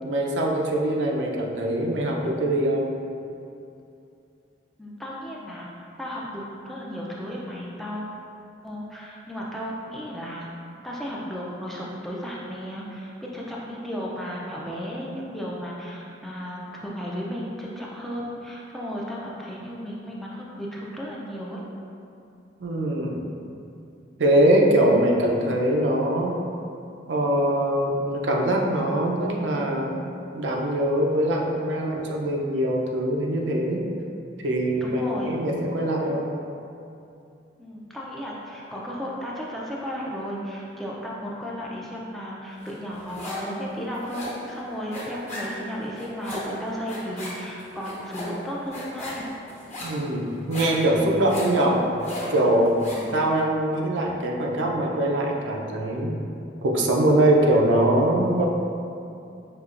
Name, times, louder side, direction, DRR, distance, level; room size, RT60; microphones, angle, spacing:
voice 1, 0.0-2.9 22.6-23.3 24.2-26.3 27.1-33.8 34.4-36.3 49.8-51.8 52.3-52.8 53.1-56.2 56.6-58.4, right 1 dB, 85° right, -1 dB, 0.5 m, -23 dB
voice 2, 4.8-5.7 6.0-8.1 8.6-10.5 10.8-21.6 34.8-35.3 37.6-49.3 52.9-53.2, equal, ahead, -5 dB, 0.4 m, -34 dB
sound 1, 42.7-43.5 43.8-53.1, left 1 dB, 35° left, 1.1 m, -37 dB
5.7 x 2.9 x 2.4 m, 2.6 s
head